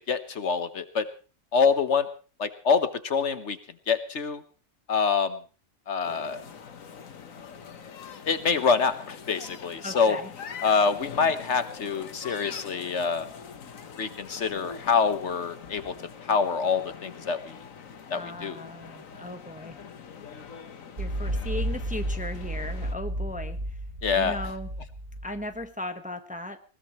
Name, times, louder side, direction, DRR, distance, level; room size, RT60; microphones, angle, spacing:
voice 1, 0.1-1.0 1.5-2.1 2.4-3.6 3.9-4.4 4.9-5.4 5.9-6.4 8.3-10.2 10.6-13.2 14.0-15.9 16.2-17.4 18.1-18.6 24.0-24.3, left 5 dB, 60° left, 11 dB, 1.3 m, -25 dB
sound 1, 6.0-23.0, left 6 dB, 80° left, 1.6 m, -44 dB
voice 2, 9.8-10.3 18.1-19.8 21.0-23.8 24.1-24.7 25.2-26.6, left 1 dB, 5° right, 7 dB, 1.1 m, -37 dB
sound 2, 21.0-25.6, right 1 dB, 75° right, 3.7 m, -32 dB
20.0 x 19.5 x 3.1 m, 0.36 s
omnidirectional pair, 1.4 m